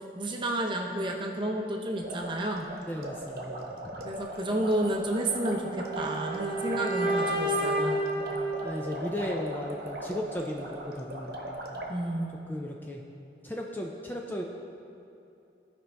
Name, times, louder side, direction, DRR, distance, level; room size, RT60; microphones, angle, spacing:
voice 1, 0.2-2.7 4.0-8.0 11.9-12.3, right 1 dB, 25° right, 1 dB, 0.7 m, -31 dB
sound 1, 2.0-11.9, right 1 dB, 55° right, 1.0 m, -39 dB
voice 2, 2.9-4.0 8.3-11.4 12.5-13.0 13.4-14.4, left 1 dB, 10° left, 0 dB, 0.4 m, -36 dB
sound 2, 5.3-9.3, right 1 dB, 60° left, 1.8 m, -31 dB
15.5 x 5.2 x 3.4 m, 2.7 s
head